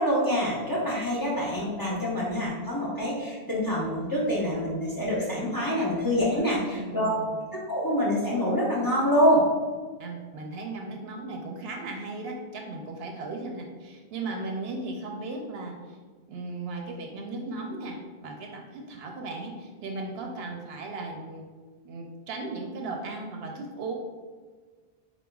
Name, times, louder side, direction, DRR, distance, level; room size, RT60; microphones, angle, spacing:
voice 1, 0.0-7.1 7.5-9.5, equal, 20° left, -6 dB, 0.9 m, -26 dB
voice 2, 6.7-7.3 10.0-16.0 16.3-21.5 21.8-23.9, right 3 dB, 70° right, 2 dB, 0.8 m, -36 dB
6.9 x 2.5 x 2.3 m, 1.5 s
omnidirectional pair, 1.1 m